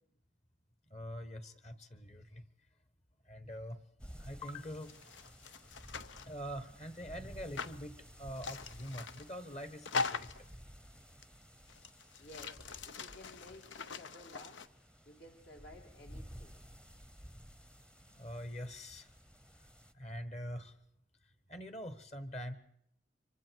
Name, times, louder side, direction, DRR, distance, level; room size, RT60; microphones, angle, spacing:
voice 1, 0.9-2.4 3.3-3.8 4.1-4.9 6.3-10.3 18.1-19.1 19.9-20.7 21.5-22.5, equal, 35° left, 11 dB, 1.3 m, -44 dB
Wind blowing cereal crop, 4.0-19.9, equal, 5° left, 0.8 m, -55 dB
sound 1, 4.8-6.3 7.6-7.8 8.4-9.3 9.8-10.5 11.2-11.3 11.7-14.7, left 4 dB, 80° left, 0.8 m, -41 dB
voice 2, 12.2-16.6, left 1 dB, 65° left, 1 dB, 2.7 m, -55 dB
25.5 x 24.5 x 4.6 m, 0.72 s
head